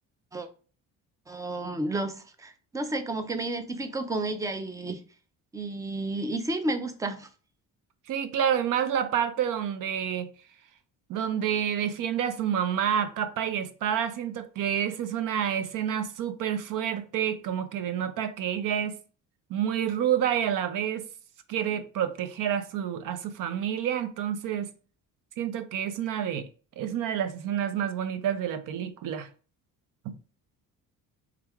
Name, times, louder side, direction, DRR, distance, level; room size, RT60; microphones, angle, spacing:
voice 1, 1.3-5.0 5.5-7.3, right 2 dB, 10° right, 0.4 m, -31 dB
voice 2, 8.1-10.3 11.1-19.0 19.5-21.1 21.5-24.7 25.4-26.5 26.8-29.3, right 9 dB, 65° right, 0.6 m, -28 dB
3.5 x 3.3 x 3.4 m
cardioid pair, 155°, 35 cm